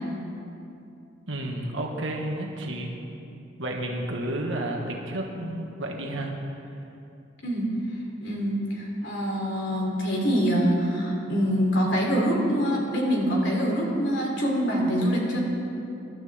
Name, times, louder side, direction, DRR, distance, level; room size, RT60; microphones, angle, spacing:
voice 1, 1.3-2.9 3.6-6.4, right 1 dB, 80° right, 0 dB, 1.6 m, -31 dB
voice 2, 7.4-7.7 8.2-15.4, equal, 65° left, -2 dB, 3.4 m, -25 dB
22.5 x 12.0 x 3.6 m, 2.7 s
head